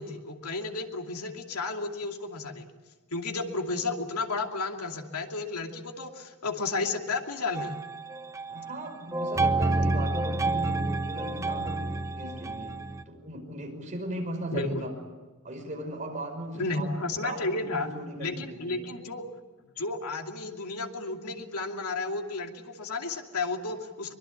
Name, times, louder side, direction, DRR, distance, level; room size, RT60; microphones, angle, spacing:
voice 1, 0.0-2.6 3.1-7.8 14.5-14.8 16.5-17.9 18.2-19.2 19.8-24.1, left 3 dB, 90° left, 3 dB, 2.7 m, -32 dB
sound 1, 7.5-8.7 9.1-13.0, right 2 dB, 15° right, 0.8 m, -29 dB
voice 2, 8.5-12.8 13.1-14.9 15.4-18.9, right 1 dB, 35° right, 3 dB, 5.5 m, -37 dB
24.0 x 22.0 x 8.5 m, 1.3 s
head